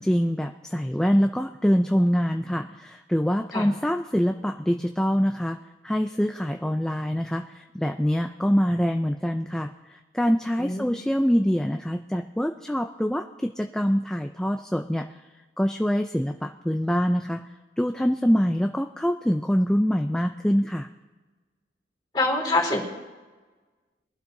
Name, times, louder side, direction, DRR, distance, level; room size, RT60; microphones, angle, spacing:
voice 1, 0.0-5.6 5.8-7.5 7.7-9.7 10.1-15.1 15.6-17.4 17.8-20.9, equal, 5° left, 5 dB, 0.3 m, -24 dB
voice 2, 22.1-22.8, left 2 dB, 25° left, -1 dB, 3.4 m, -24 dB
22.0 x 12.0 x 2.7 m, 1.3 s
head